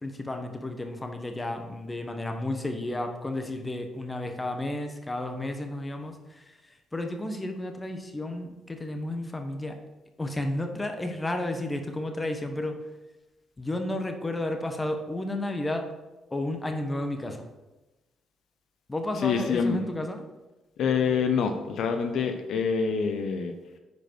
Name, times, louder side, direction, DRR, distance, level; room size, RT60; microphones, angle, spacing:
voice 1, 0.0-9.8 10.2-12.8 13.6-15.9 16.3-17.5 18.9-20.2, left 1 dB, 20° left, 5 dB, 1.1 m, -32 dB
voice 2, 19.1-19.8 20.8-23.5, left 6 dB, 75° left, 6 dB, 0.8 m, -26 dB
9.5 x 5.1 x 4.7 m, 1.1 s
cardioid pair, 90°, 0 cm